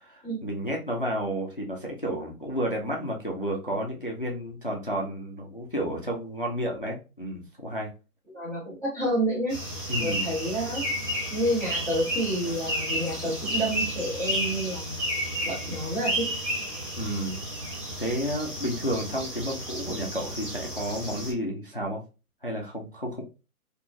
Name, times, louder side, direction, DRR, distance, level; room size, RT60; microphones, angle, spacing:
voice 1, 0.0-7.9 9.9-10.3 17.0-17.5 18.0-22.0 22.4-23.2, equal, 40° left, 0 dB, 0.4 m, -31 dB
voice 2, 8.3-9.6 10.0-10.9 11.3-15.0 15.4-16.3, right 1 dB, 10° right, -15 dB, 1.1 m, -29 dB
sound 1, 9.5-21.3, equal, 30° right, 1.4 m, -32 dB
3.7 x 2.4 x 2.3 m, 0.31 s
hypercardioid pair, 175°, 44 cm